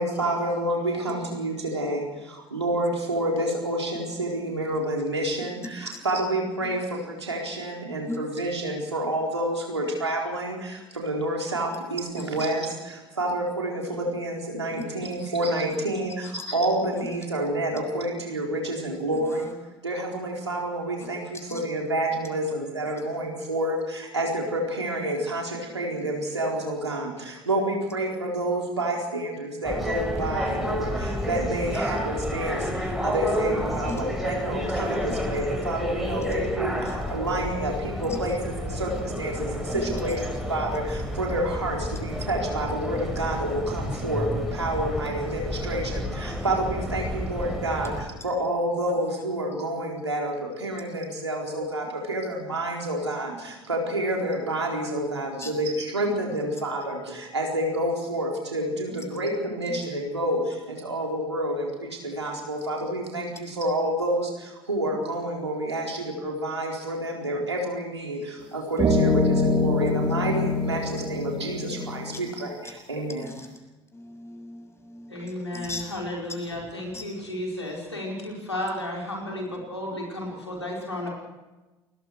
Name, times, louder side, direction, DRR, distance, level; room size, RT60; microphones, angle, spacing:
voice 1, 0.0-19.5 19.8-73.4, right 1 dB, 85° right, 0 dB, 4.2 m, -29 dB
sound 1, 29.6-48.1, equal, ahead, 5.9 m, -30 dB
sound 2, 68.4-68.5 68.8-72.2, left 2 dB, 35° right, 3.8 m, -24 dB
voice 2, 73.9-75.1 75.5-75.8 76.9-77.0, left 2 dB, 20° left, 4 dB, 7.1 m, -37 dB
voice 3, 75.1-81.1, left 1 dB, 90° left, -1 dB, 5.0 m, -33 dB
29.0 x 20.5 x 4.8 m, 1.1 s
figure-of-eight pair, 60°, 14 cm